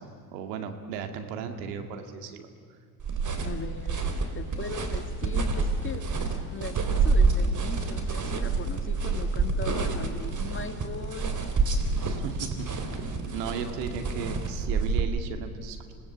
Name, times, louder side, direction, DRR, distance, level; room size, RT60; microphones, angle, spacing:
voice 1, 0.0-2.5 12.0-12.7 12.9-13.0 13.3-15.9, right 6 dB, 75° right, 7 dB, 2.4 m, -36 dB
sound 1, 3.0-15.0, right 4 dB, 40° right, 3.6 m, -28 dB
voice 2, 3.4-4.1 4.3-6.0 6.5-11.4 14.2-14.4, left 4 dB, 25° left, 7 dB, 2.4 m, -39 dB
26.5 x 18.5 x 8.5 m, 2.3 s
hypercardioid pair, 65°, 48 cm